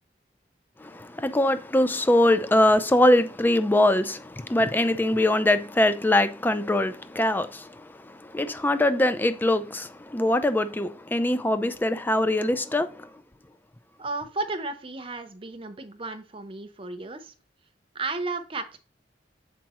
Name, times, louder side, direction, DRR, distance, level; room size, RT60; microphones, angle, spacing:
voice 1, 0.8-13.1, left 1 dB, 10° left, 0.4 m, -23 dB
voice 2, 14.0-17.3 17.9-18.8, right 3 dB, 30° right, 0.7 m, -33 dB
7.4 x 4.6 x 3.0 m
head